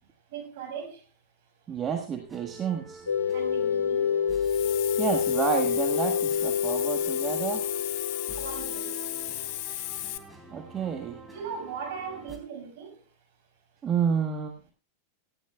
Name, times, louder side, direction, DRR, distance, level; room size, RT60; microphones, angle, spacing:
voice 1, 0.3-1.0 3.3-4.1 8.4-8.9 11.3-12.9, right 6 dB, 50° right, 5.4 m, -38 dB
voice 2, 1.7-3.0 5.0-7.6 10.5-11.2 13.8-14.7, right 7 dB, 25° right, 1.5 m, -30 dB
sound 1, 2.3-12.4, right 1 dB, 10° right, 3.5 m, -46 dB
sound 2, 3.1-9.6, left 7 dB, 75° left, 1.0 m, -28 dB
Hiss, 4.4-10.2, left 16 dB, 45° left, 1.0 m, -35 dB
18.5 x 15.0 x 2.3 m
figure-of-eight pair, 90°, 0 cm